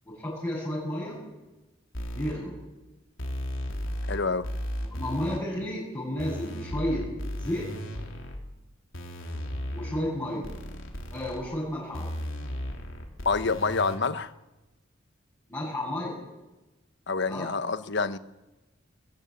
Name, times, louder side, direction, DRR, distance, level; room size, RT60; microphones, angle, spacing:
voice 1, 0.1-1.2 2.2-2.5 4.9-7.1 7.3-7.7 9.7-10.5 11.1-12.1 15.5-16.2 17.3-17.5, left 1 dB, 15° left, 7.9 m, -32 dB
sound 1, 1.9-2.3 3.2-4.2 4.4-5.4 6.2-8.4 8.9-10.0 10.4-11.4 11.9-14.0, equal, 80° left, 3.5 m, -35 dB
voice 2, 4.1-4.5 13.2-14.3 17.1-18.2, left 4 dB, 60° left, 1.0 m, -27 dB
21.0 x 15.0 x 8.8 m
head